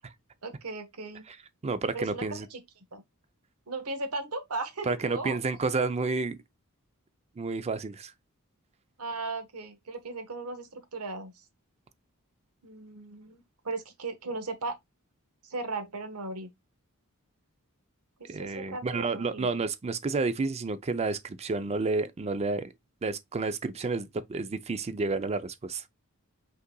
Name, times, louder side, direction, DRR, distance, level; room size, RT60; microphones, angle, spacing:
voice 1, 0.4-1.2 1.9-2.2 2.5-2.6 2.9-3.0 3.7-5.4 9.0-11.3 12.6-14.8 15.4-16.5 18.2-19.5, right 3 dB, 80° right, 1.2 m, -37 dB
voice 2, 1.6-2.5 4.8-6.4 7.4-8.1 18.3-22.7 23.0-25.8, right 3 dB, 30° right, 0.4 m, -30 dB
5.5 x 3.9 x 2.2 m
head